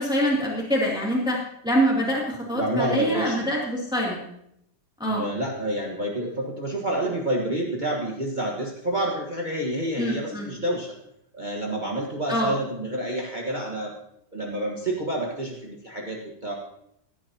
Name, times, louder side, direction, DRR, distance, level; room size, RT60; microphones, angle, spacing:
voice 1, 0.0-1.4 1.6-4.3 5.0-5.3 10.0-10.5 12.3-12.5, equal, ahead, -4 dB, 2.5 m, -25 dB
voice 2, 2.5-3.6 5.0-10.9 11.3-13.9 14.3-16.5, right 1 dB, 30° right, -2 dB, 1.6 m, -28 dB
16.5 x 11.0 x 2.9 m, 0.75 s
omnidirectional pair, 1.8 m